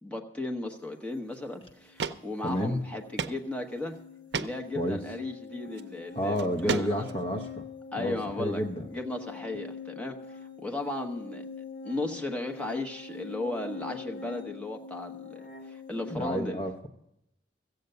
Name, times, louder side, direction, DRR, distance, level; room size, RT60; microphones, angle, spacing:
voice 1, 0.0-4.0 4.4-7.1 7.9-8.6 8.9-10.2 10.6-11.4 11.8-16.6, left 2 dB, 5° left, 2 dB, 1.1 m, -35 dB
sound 1, 1.3-1.4 2.0-2.2 2.5-2.6 3.2-3.4 3.8-3.9 4.3-4.5 5.6-5.8 6.4-7.2, right 5 dB, 70° right, 0.6 m, -31 dB
sound 2, 1.4-1.5 1.8-16.2, left 4 dB, 80° left, 1.3 m, -44 dB
voice 2, 2.4-2.8 4.7-5.0 6.2-7.6 8.0-8.9 16.1-16.9, equal, 30° left, 5 dB, 0.8 m, -30 dB
14.5 x 8.1 x 6.7 m, 0.79 s
head